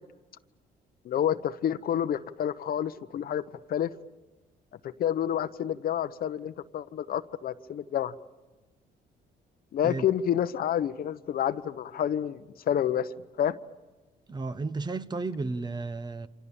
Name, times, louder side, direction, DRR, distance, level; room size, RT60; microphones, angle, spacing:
voice 1, 1.0-3.4 3.7-3.9 4.8-8.1 9.7-13.1 13.4-13.6, left 10 dB, 60° left, 0.9 m, -29 dB
voice 2, 14.3-16.3, right 3 dB, 25° right, 1.0 m, -33 dB
29.0 x 26.5 x 7.1 m
cardioid pair, 125°, 17 cm